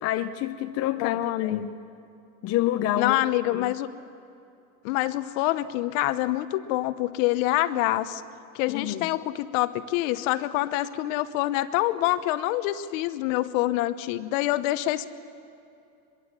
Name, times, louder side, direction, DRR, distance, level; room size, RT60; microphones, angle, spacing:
voice 1, 0.0-1.7 2.4-3.2 3.5-3.7 8.7-9.1, left 13 dB, 35° left, 8 dB, 0.7 m, -28 dB
voice 2, 1.0-1.7 3.0-3.9 4.8-8.2 8.5-15.1, left 15 dB, 55° left, 13 dB, 1.1 m, -26 dB
23.0 x 22.5 x 7.5 m, 2.7 s
supercardioid pair, 130°, 45 cm